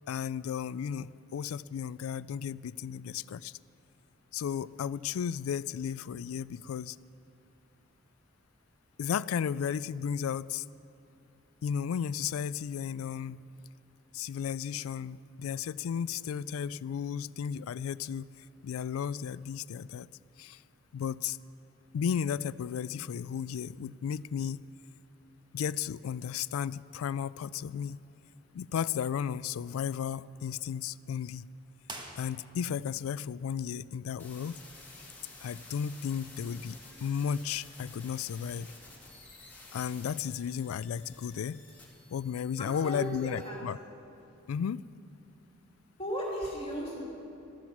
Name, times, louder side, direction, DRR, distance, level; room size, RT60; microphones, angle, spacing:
voice 1, 0.1-3.5 4.3-7.0 9.0-10.7 11.6-13.4 14.1-18.3 18.6-20.1 20.4-20.6 20.9-21.4 21.9-24.6 25.5-28.0 28.5-31.5 32.2-34.6 35.4-38.7 39.7-41.6 42.1-43.8 44.5-44.8, left 8 dB, 80° left, 20 dB, 0.3 m, -34 dB
sound 1, 31.8-32.9, right 2 dB, 20° right, 1.3 m, -45 dB
sound 2, 34.2-43.5, left 2 dB, 10° left, 2.9 m, -52 dB
voice 2, 42.6-43.6 46.0-47.0, equal, 30° left, -4 dB, 3.0 m, -36 dB
14.0 x 13.0 x 6.0 m, 2.6 s
head